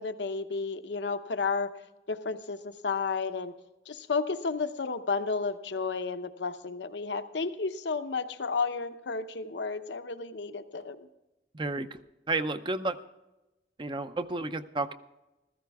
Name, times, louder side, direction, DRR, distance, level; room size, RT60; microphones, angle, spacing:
voice 1, 0.0-1.7 2.1-3.5 3.9-11.1, left 4 dB, 75° left, 10 dB, 0.8 m, -32 dB
voice 2, 11.5-12.0 12.3-13.0 13.8-14.9, right 2 dB, 30° right, 10 dB, 0.6 m, -31 dB
15.0 x 14.0 x 3.5 m, 0.99 s
head